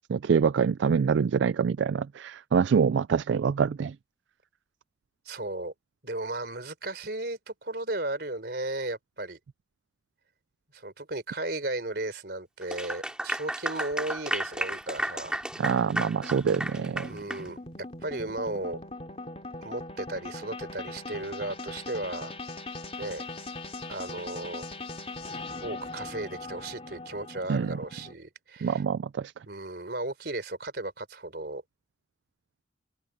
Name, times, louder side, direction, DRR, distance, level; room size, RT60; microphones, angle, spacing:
voice 1, 0.1-4.0 15.6-17.1 27.5-27.7 28.6-29.3, right 6 dB, 75° right, 0.3 m, -25 dB
voice 2, 5.3-5.7 6.0-9.4 10.7-15.3 17.1-17.6 18.0-18.8 19.6-22.3 23.0-23.2 23.9-24.7 25.6-28.8 29.5-31.6, right 2 dB, 55° right, 3.9 m, -35 dB
Clapping / Applause, 12.6-17.5, right 1 dB, 5° right, 2.9 m, -33 dB
sound 1, 13.9-28.1, left 2 dB, 30° left, 3.0 m, -41 dB
head